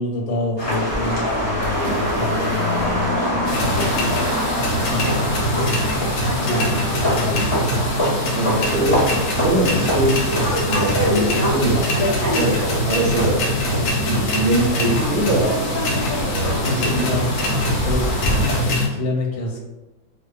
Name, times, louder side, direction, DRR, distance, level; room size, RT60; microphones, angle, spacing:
voice 1, 0.0-6.0 6.4-7.7 11.8-11.9 16.6-19.6, left 2 dB, 85° left, 0 dB, 1.3 m, -28 dB
sound 1, 0.6-18.6, equal, 45° left, 0.4 m, -24 dB
sound 2, 1.6-6.4, right 2 dB, 90° right, 0.6 m, -39 dB
sound 3, 3.5-18.9, left 1 dB, 70° left, 0.7 m, -23 dB
voice 2, 8.3-10.3 10.7-11.8 12.3-13.4 14.0-15.4 16.2-16.5 16.8-17.1, right 2 dB, 70° right, 0 dB, 1.0 m, -22 dB
2.6 x 2.3 x 2.3 m, 1.1 s
omnidirectional pair, 1.9 m